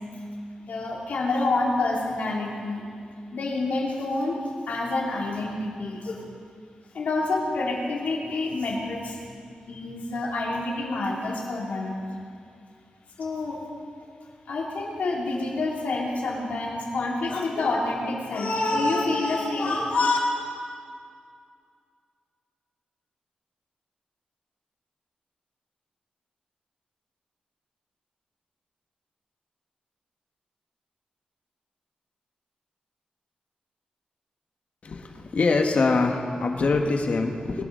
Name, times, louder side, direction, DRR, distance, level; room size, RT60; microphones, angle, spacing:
voice 1, 0.6-2.8 3.3-4.4 4.7-6.2 6.9-9.2 9.7-12.0 13.2-13.6 14.5-20.2, left 2 dB, 80° left, -3 dB, 2.8 m, -27 dB
voice 2, 34.8-37.6, left 3 dB, 55° left, 3 dB, 1.4 m, -24 dB
21.5 x 12.0 x 3.9 m, 2.3 s
wide cardioid pair, 105°, 3 cm